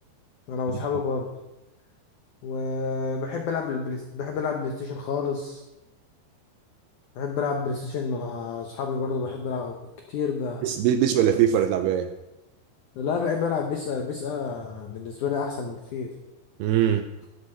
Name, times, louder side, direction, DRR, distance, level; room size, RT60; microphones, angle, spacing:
voice 1, 0.5-1.3 2.4-5.6 7.2-9.8 10.1-10.6 13.0-16.1, left 5 dB, 85° left, 3 dB, 1.7 m, -29 dB
voice 2, 10.6-12.1 16.6-17.1, right 10 dB, 85° right, 8 dB, 2.3 m, -22 dB
13.0 x 11.5 x 4.5 m, 0.98 s
omnidirectional pair, 5.1 m